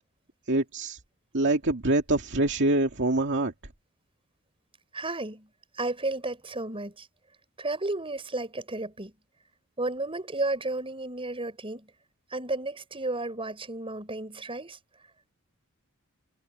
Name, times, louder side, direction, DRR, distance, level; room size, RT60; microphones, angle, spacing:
voice 1, 0.5-1.0 1.3-3.5, right 2 dB, 60° right, 2.3 m, -25 dB
voice 2, 4.9-5.5 5.8-7.1 7.6-9.1 9.8-11.9 12.3-14.8, right 2 dB, 25° right, 7.1 m, -32 dB
head